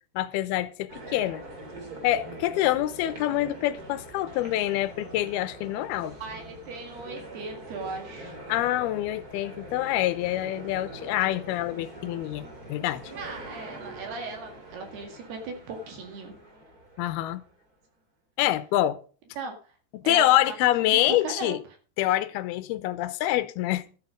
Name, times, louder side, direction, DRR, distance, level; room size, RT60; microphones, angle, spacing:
voice 1, 0.2-1.4 2.0-6.1 8.5-13.0 17.0-17.4 18.4-19.0 19.9-21.6 22.0-23.8, left 14 dB, 80° left, 2.6 m, -26 dB
sound 1, 0.9-17.5, right 1 dB, 25° right, 2.9 m, -43 dB
voice 2, 6.2-8.4 13.1-16.4 19.4-19.7 20.0-21.6, right 4 dB, 70° right, 3.9 m, -38 dB
13.5 x 8.3 x 5.2 m
omnidirectional pair, 4.9 m